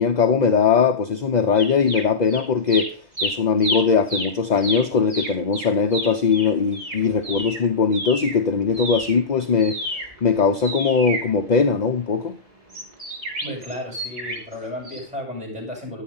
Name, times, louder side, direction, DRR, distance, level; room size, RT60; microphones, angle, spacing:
voice 1, 0.0-9.8 10.2-12.4, left 5 dB, 40° left, 0.7 m, -20 dB
sound 1, 1.6-2.4 2.7-8.4 8.7-12.0 12.7-14.5 14.8-15.0, right 1 dB, 35° right, 4.5 m, -30 dB
voice 2, 13.4-16.0, left 1 dB, 5° right, 8.0 m, -33 dB
12.0 x 8.8 x 5.4 m
omnidirectional pair, 1.3 m